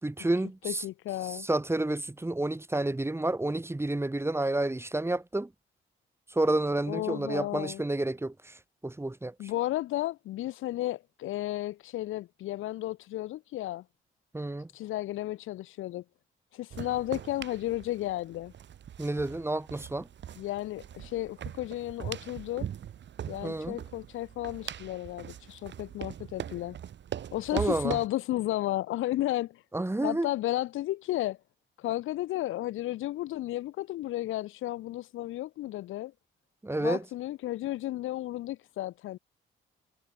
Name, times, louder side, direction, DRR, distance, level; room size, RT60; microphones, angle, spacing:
voice 1, 0.0-0.8 1.2-5.5 6.3-9.5 14.3-14.7 19.0-20.1 23.4-23.8 27.5-28.0 29.7-30.3 36.6-37.0, right 2 dB, 10° right, 5.6 m, -30 dB
voice 2, 0.6-1.5 6.9-7.8 9.4-13.8 14.7-16.0 16.5-18.5 20.4-22.7 23.3-26.8 27.3-29.6 30.0-31.4 31.8-36.1 36.8-39.2, left 15 dB, 90° left, 6.2 m, -33 dB
sound 1, 16.7-28.1, right 10 dB, 65° right, 6.5 m, -41 dB
cardioid pair, 90°, 20 cm